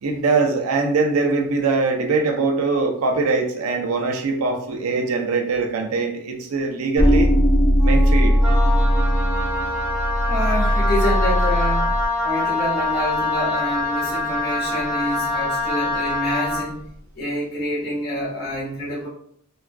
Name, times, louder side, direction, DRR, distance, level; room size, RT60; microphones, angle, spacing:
voice 1, 0.0-7.3 7.8-8.4, right 3 dB, 75° right, 3 dB, 0.5 m, -22 dB
sound 1, 7.0-12.1, equal, 25° left, 0.4 m, -19 dB
Wind instrument woodwind instrument, 7.8-12.1, left 6 dB, 80° left, 0.7 m, -38 dB
Wind instrument woodwind instrument 2, 8.4-16.7, left 2 dB, 10° right, 0.9 m, -25 dB
voice 2, 10.2-16.9 17.1-19.1, equal, 40° left, -7 dB, 1.3 m, -27 dB
3.4 x 2.3 x 2.2 m, 0.65 s
head